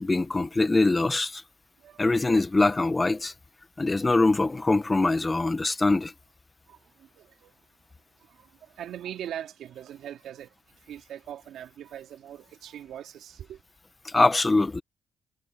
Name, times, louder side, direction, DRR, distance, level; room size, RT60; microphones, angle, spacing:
voice 1, 0.0-1.4 2.0-3.3 3.8-6.1 14.0-14.8, left 2 dB, 20° left, 1.6 m, -23 dB
voice 2, 7.2-7.5 8.4-8.5 8.8-10.5 10.9-13.6, right 10 dB, 75° right, 2.8 m, -40 dB
cardioid pair, 90°, 0 cm